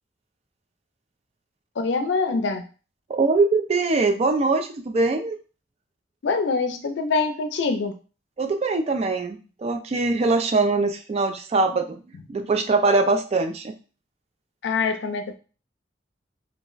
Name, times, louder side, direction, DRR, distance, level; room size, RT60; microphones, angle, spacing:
voice 1, 1.8-2.6 6.2-8.0 14.6-15.4, left 4 dB, 80° left, 7 dB, 0.4 m, -24 dB
voice 2, 3.1-5.4 8.4-12.0 12.3-13.7, right 3 dB, 35° right, 5 dB, 0.3 m, -22 dB
2.3 x 2.1 x 3.8 m, 0.36 s
head